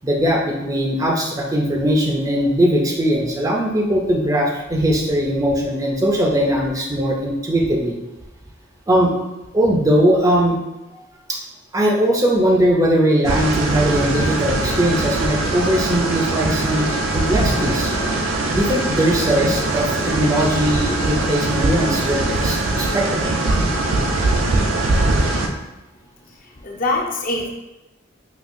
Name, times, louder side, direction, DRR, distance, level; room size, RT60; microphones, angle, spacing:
voice 1, 0.0-8.0 8.9-9.1 9.5-10.6 10.9-11.0 11.3-11.4 11.7-16.9 17.1-17.9 18.5-23.4, equal, 20° right, 0 dB, 0.5 m, -19 dB
sound 1, 13.2-25.5, right 2 dB, 80° right, 0.5 m, -21 dB
voice 2, 26.2-27.5, left 2 dB, 45° left, 0 dB, 0.6 m, -24 dB
5.1 x 2.8 x 2.5 m, 1.0 s
head